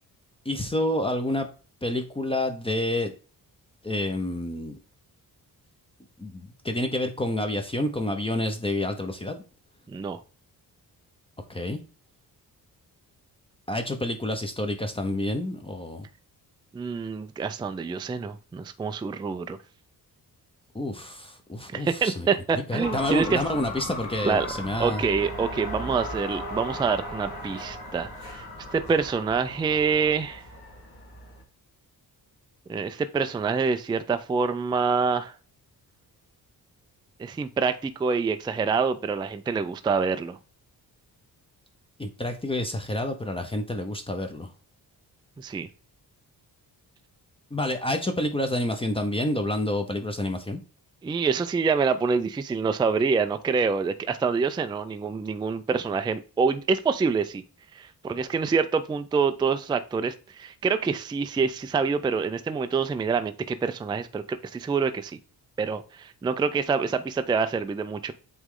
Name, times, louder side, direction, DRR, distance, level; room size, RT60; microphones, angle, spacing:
voice 1, 0.5-1.5 1.8-3.1 3.8-4.8 6.2-9.4 11.5-11.8 13.7-16.1 20.7-22.3 22.7-25.0 42.0-44.5 47.5-50.6, left 1 dB, 15° left, 5 dB, 0.6 m, -28 dB
voice 2, 9.9-10.2 16.7-19.6 21.7-23.4 24.2-24.5 24.8-28.5 28.7-30.4 32.7-35.3 37.2-40.4 45.4-45.7 51.0-57.4 57.7-65.2 65.6-68.1, right 5 dB, 15° right, 9 dB, 0.3 m, -26 dB
sound 1, 22.8-31.4, left 1 dB, 70° left, 2.2 m, -37 dB
8.0 x 3.2 x 3.7 m, 0.36 s
wide cardioid pair, 150°, 38 cm